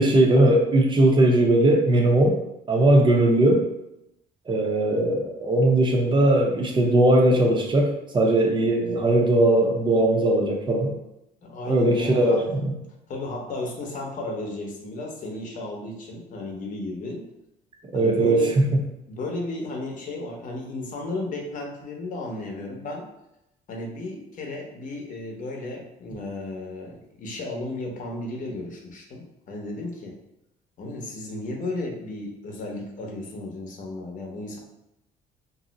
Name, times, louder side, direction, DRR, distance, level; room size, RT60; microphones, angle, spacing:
voice 1, 0.0-2.4 2.7-3.7 4.5-10.9 11.7-12.7 17.9-18.5, right 1 dB, 30° right, 1 dB, 0.6 m, -19 dB
voice 2, 11.4-12.4 13.1-17.3 17.9-18.6 19.1-23.1 23.7-30.2 30.8-34.6, left 2 dB, 50° left, 0 dB, 0.8 m, -34 dB
2.6 x 2.0 x 3.9 m, 0.86 s
cardioid pair, 110°, 17 cm